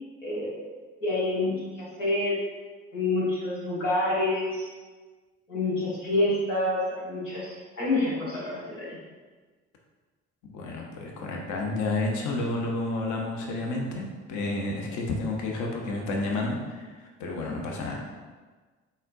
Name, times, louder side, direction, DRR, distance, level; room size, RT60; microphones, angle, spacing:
voice 1, 0.2-0.7 1.0-2.4 2.9-4.7 5.5-9.0, left 2 dB, 85° left, -8 dB, 1.3 m, -28 dB
voice 2, 10.5-16.9 17.2-18.0, left 2 dB, 50° left, 0 dB, 0.9 m, -30 dB
4.1 x 3.9 x 2.6 m, 1.4 s
figure-of-eight pair, 50°, 37 cm